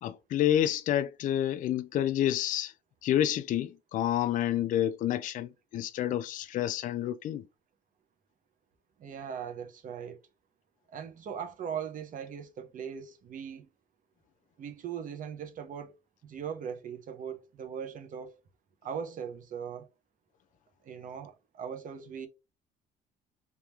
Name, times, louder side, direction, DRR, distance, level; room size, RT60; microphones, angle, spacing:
voice 1, 0.0-2.7 3.0-7.5, left 11 dB, 50° left, 0.4 m, -29 dB
voice 2, 9.0-10.2 10.9-13.7 14.6-15.9 16.2-18.3 18.8-19.9 20.8-22.3, right 7 dB, 50° right, 1.0 m, -39 dB
3.6 x 2.8 x 3.1 m
cardioid pair, 110°, 17 cm